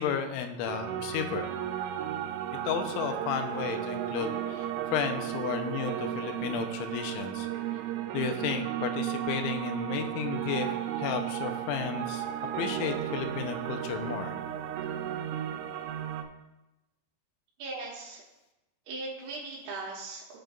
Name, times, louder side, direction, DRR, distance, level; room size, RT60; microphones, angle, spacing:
voice 1, 0.0-1.5 2.6-7.5 8.1-12.3 12.6-14.3, left 7 dB, 90° left, 6 dB, 3.1 m, -33 dB
sound 1, 0.7-16.3, right 11 dB, 90° right, 3.0 m, -34 dB
voice 2, 17.6-18.2 18.9-20.4, right 3 dB, 75° right, -5 dB, 2.6 m, -39 dB
15.0 x 5.1 x 2.3 m, 1.0 s
omnidirectional pair, 5.3 m